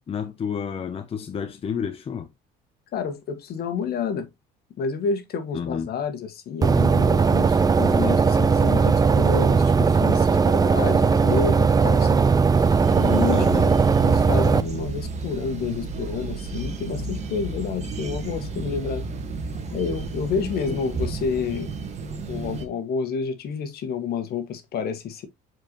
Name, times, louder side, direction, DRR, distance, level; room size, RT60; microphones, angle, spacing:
voice 1, 0.0-2.3 5.5-5.9 13.3-13.7 20.7-20.8, left 7 dB, 30° left, 0.8 m, -30 dB
voice 2, 2.9-4.3 4.8-12.2 12.9-13.8 14.0-19.0 19.7-21.7 22.3-25.3, left 6 dB, 55° left, 1.6 m, -29 dB
sound 1, 6.6-14.6, right 5 dB, 20° right, 0.5 m, -18 dB
sound 2, 12.6-22.6, right 4 dB, 35° right, 1.8 m, -32 dB
7.6 x 4.6 x 3.1 m
cardioid pair, 110°, 19 cm